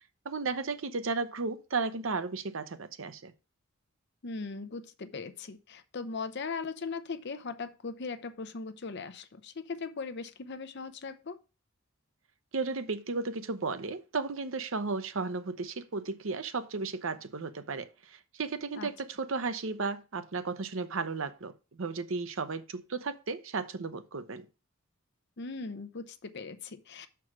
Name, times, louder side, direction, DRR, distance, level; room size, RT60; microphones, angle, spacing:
voice 1, 0.2-3.3 12.5-24.4, right 4 dB, 65° right, 0.7 m, -34 dB
voice 2, 4.2-11.4 18.7-18.9 25.4-27.1, left 4 dB, 55° left, 0.7 m, -39 dB
6.1 x 4.7 x 5.9 m
head